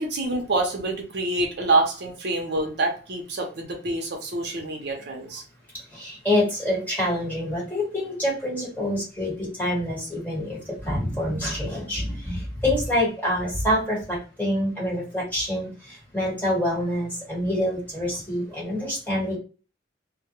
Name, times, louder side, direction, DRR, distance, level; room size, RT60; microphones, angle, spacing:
voice 1, 0.0-5.4, right 2 dB, 60° right, 1 dB, 0.6 m, -26 dB
voice 2, 5.9-19.4, left 1 dB, 10° left, -6 dB, 1.3 m, -26 dB
2.2 x 2.1 x 2.9 m, 0.35 s
head